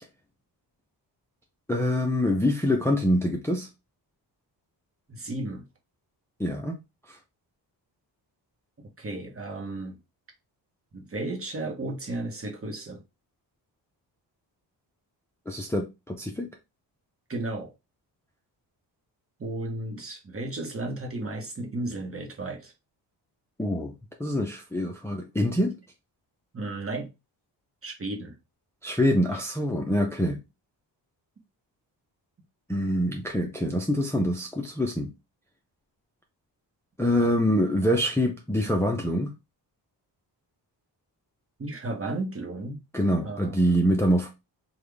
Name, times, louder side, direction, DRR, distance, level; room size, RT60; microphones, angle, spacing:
voice 1, 1.7-3.7 6.4-6.8 7.1-7.2 15.5-16.5 23.6-23.9 24.2-25.8 28.8-30.4 32.7-35.1 37.0-39.3 42.9-44.3, equal, 5° left, 0.5 m, -25 dB
voice 2, 5.1-5.7 9.0-10.0 10.9-13.0 17.3-17.7 19.4-22.7 26.5-27.1 27.8-28.4 41.6-42.8 43.2-44.0, right 2 dB, 30° right, 1.0 m, -34 dB
3.5 x 2.4 x 3.3 m
cardioid pair, 95°, 44 cm